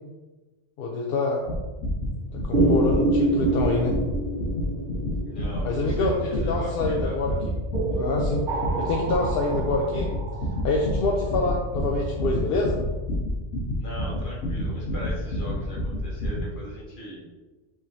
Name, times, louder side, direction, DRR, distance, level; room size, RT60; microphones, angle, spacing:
voice 1, 0.8-1.4 2.3-4.0 5.6-7.3 8.0-8.4 8.8-10.1 10.6-12.8, left 3 dB, 60° left, -1 dB, 0.7 m, -26 dB
sound 1, 1.4-16.5, equal, 75° left, 1.2 m, -29 dB
sound 2, 2.5-6.8 7.7-11.5, right 2 dB, 50° right, 0.8 m, -28 dB
voice 2, 5.2-7.2 13.8-17.3, left 1 dB, 45° left, -3 dB, 1.2 m, -39 dB
5.4 x 3.7 x 2.6 m, 1.2 s
omnidirectional pair, 1.2 m